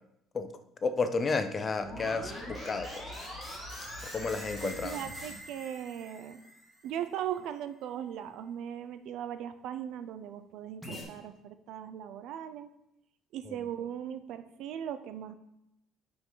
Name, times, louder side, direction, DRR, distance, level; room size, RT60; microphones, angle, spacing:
voice 1, 0.8-3.0 4.1-5.0, left 4 dB, 25° left, 9 dB, 0.5 m, -31 dB
sound 1, 1.8-7.1 10.8-11.0, equal, ahead, 2.3 m, -43 dB
voice 2, 4.6-6.4 6.8-12.7 13.3-15.3, right 10 dB, 65° right, 11 dB, 0.6 m, -38 dB
9.8 x 5.2 x 3.9 m, 0.87 s
cardioid pair, 150°, 0 cm